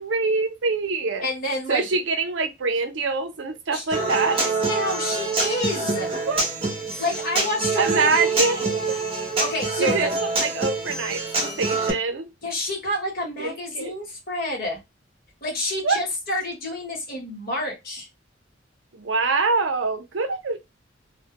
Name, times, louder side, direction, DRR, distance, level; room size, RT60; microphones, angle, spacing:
voice 1, 0.0-1.3 1.7-4.5 6.3-6.4 7.8-8.8 9.8-10.1 10.4-12.3 13.4-13.9 15.8-16.0 18.9-20.6, right 4 dB, 75° right, 0.5 m, -25 dB
voice 2, 1.2-1.8 3.7-6.1 7.0-8.8 9.4-10.1 12.4-14.8 15.4-18.1, left 1 dB, 50° left, 1.1 m, -29 dB
Human voice / Acoustic guitar, 3.9-11.9, right 3 dB, 30° right, 0.7 m, -26 dB
2.2 x 2.1 x 2.8 m
head